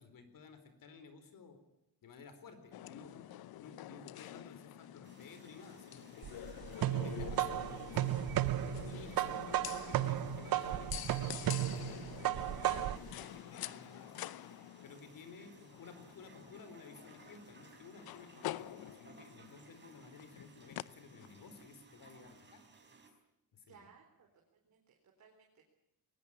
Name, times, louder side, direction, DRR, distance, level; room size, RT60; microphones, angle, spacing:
voice 1, 0.0-1.6 2.0-3.3 3.6-6.3 6.7-8.1 8.8-14.1 14.8-22.6 23.5-23.9, left 4 dB, 65° left, 10 dB, 4.4 m, -55 dB
sound 1, 2.7-21.6, left 14 dB, 85° left, 0.8 m, -48 dB
sound 2, 5.0-23.1, right 4 dB, 30° right, 5.2 m, -61 dB
sound 3, 6.2-13.1, right 13 dB, 75° right, 1.0 m, -34 dB
voice 2, 23.7-24.3 24.6-25.6, right 6 dB, 50° right, 1 dB, 4.0 m, -63 dB
20.5 x 19.0 x 9.8 m, 0.82 s
cardioid pair, 130°, 35 cm